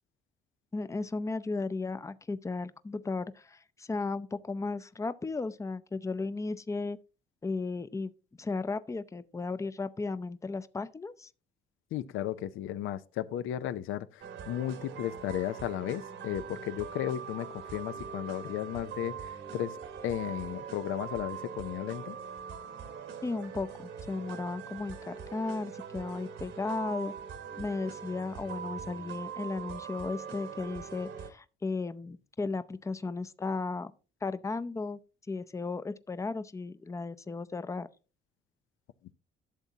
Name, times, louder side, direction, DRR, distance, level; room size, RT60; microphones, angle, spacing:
voice 1, 0.7-7.0 7.4-8.1 8.4-11.3 23.2-27.1 27.6-33.9 34.2-35.0 35.3-37.9, left 3 dB, 15° left, 0.5 m, -35 dB
voice 2, 11.9-22.2, left 11 dB, 85° left, 0.5 m, -35 dB
sound 1, 14.2-31.3, right 7 dB, 80° right, 1.6 m, -42 dB
12.0 x 7.2 x 2.8 m
cardioid pair, 90°, 20 cm